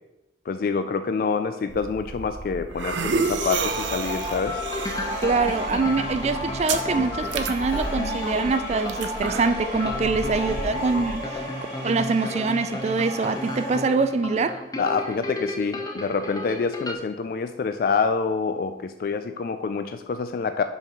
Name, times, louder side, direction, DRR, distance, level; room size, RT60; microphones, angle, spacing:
voice 1, 0.5-4.6 14.8-20.6, left 5 dB, 50° left, 9 dB, 0.3 m, -26 dB
sound 1, 1.7-11.2, right 4 dB, 85° right, 0.6 m, -32 dB
sound 2, 3.1-13.8, left 1 dB, 70° left, 2.4 m, -33 dB
sound 3, 4.6-16.9, left 1 dB, 20° left, 0.6 m, -34 dB
voice 2, 5.2-11.4 11.8-14.6, right 4 dB, 35° right, 10 dB, 0.4 m, -24 dB
5.6 x 4.6 x 5.2 m, 0.99 s
head